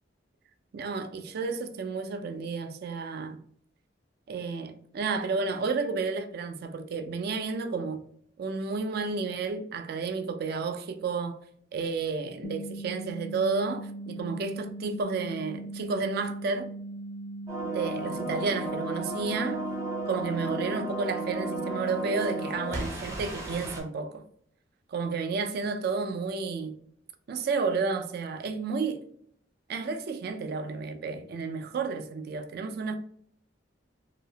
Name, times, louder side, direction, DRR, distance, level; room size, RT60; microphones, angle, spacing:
voice 1, 0.7-3.4 4.3-8.0 8.4-11.4 11.7-16.7 17.6-19.6 20.1-24.2 24.9-26.8 27.3-29.0 29.7-33.0, right 4 dB, 55° right, 0.3 m, -31 dB
sound 1, 12.4-22.4, right 2 dB, 80° left, 0.3 m, -39 dB
sound 2, 17.5-23.8, right 2 dB, 15° right, 0.6 m, -34 dB
2.7 x 2.0 x 2.7 m
head